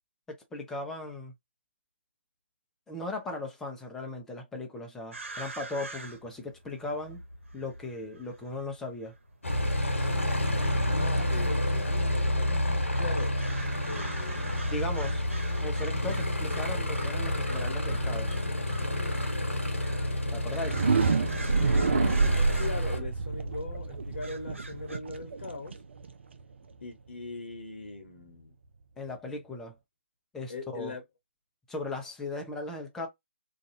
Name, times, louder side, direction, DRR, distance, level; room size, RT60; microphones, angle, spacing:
voice 1, 0.3-1.3 2.9-7.2 7.5-9.1 14.7-15.3 15.6-18.4 20.3-20.8 29.0-29.8 30.3-30.9 31.7-33.1, left 2 dB, 5° left, 0.6 m, -37 dB
sound 1, 5.1-25.0, right 2 dB, 75° right, 1.0 m, -45 dB
Aircraft, 9.4-23.0, left 1 dB, 85° left, 1.0 m, -29 dB
voice 2, 11.0-12.0 13.0-13.3 13.8-14.7 20.8-21.0 21.6-25.8 26.8-28.5 30.5-31.0, left 3 dB, 60° left, 1.0 m, -40 dB
sound 2, 20.6-26.4, right 4 dB, 60° right, 0.6 m, -28 dB
2.6 x 2.3 x 2.6 m
figure-of-eight pair, 145°, 7 cm